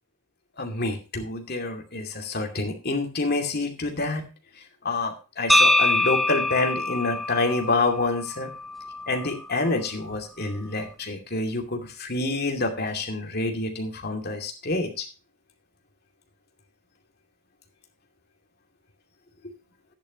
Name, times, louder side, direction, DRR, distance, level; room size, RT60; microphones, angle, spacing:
voice 1, 0.6-4.2 4.8-8.5 9.1-15.1, left 2 dB, 50° left, 3 dB, 2.6 m, -27 dB
sound 1, 5.5-9.6, left 2 dB, ahead, 0.6 m, -24 dB
13.0 x 10.5 x 2.9 m, 0.32 s
head